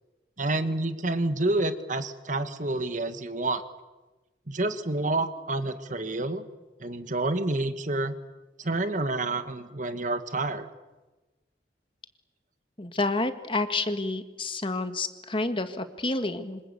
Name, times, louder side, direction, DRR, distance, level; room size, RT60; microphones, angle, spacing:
voice 1, 0.4-3.6 4.5-6.4 6.8-8.1 8.6-10.7, right 2 dB, 45° right, 10 dB, 1.7 m, -28 dB
voice 2, 12.8-16.6, left 2 dB, 30° left, 9 dB, 1.7 m, -29 dB
27.0 x 25.5 x 8.5 m, 1.1 s
head